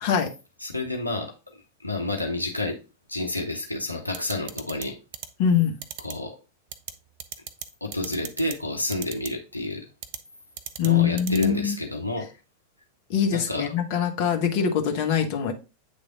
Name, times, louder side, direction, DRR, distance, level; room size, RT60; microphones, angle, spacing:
voice 1, 0.6-1.3 1.8-2.8 3.1-5.0 6.0-6.4 7.8-9.9 10.8-12.3 13.3-13.7, left 2 dB, 85° left, 0.8 m, -29 dB
sound 1, 4.1-4.8 5.1-5.3 5.8-6.1 6.7-6.9 7.2-7.6 7.9-8.5 8.9-9.3 10.0-10.2 10.6-10.9 11.2-11.5, right 9 dB, 45° right, 0.6 m, -35 dB
voice 2, 5.4-5.8 10.8-11.8 13.1-15.5, left 8 dB, 45° left, 1.0 m, -23 dB
8.3 x 3.4 x 3.8 m
figure-of-eight pair, 90°, 0 cm